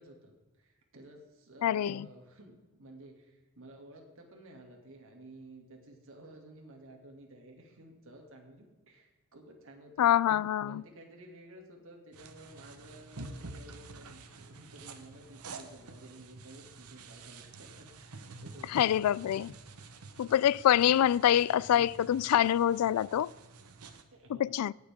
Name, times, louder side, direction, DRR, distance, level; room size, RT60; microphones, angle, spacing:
voice 1, 0.0-10.1 10.7-19.1 20.8-21.1 24.1-24.6, right 1 dB, 65° right, 2.5 m, -53 dB
voice 2, 1.6-2.1 10.0-10.8 18.7-19.5 20.2-23.3 24.4-24.7, left 10 dB, 85° left, 0.3 m, -25 dB
sound 1, 12.1-24.0, right 3 dB, 90° right, 1.1 m, -49 dB
18.5 x 7.3 x 3.6 m
head